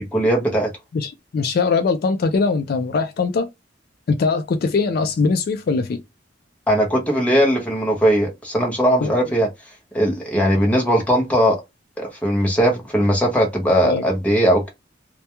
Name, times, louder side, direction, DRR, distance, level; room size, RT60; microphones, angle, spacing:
voice 1, 0.1-0.7 6.7-9.5 9.9-11.6 12.0-14.7, equal, 5° left, 0.6 m, -19 dB
voice 2, 0.9-3.5 4.1-6.0 9.0-9.1 13.8-14.0, left 4 dB, 50° left, 0.3 m, -21 dB
2.2 x 2.2 x 2.8 m
head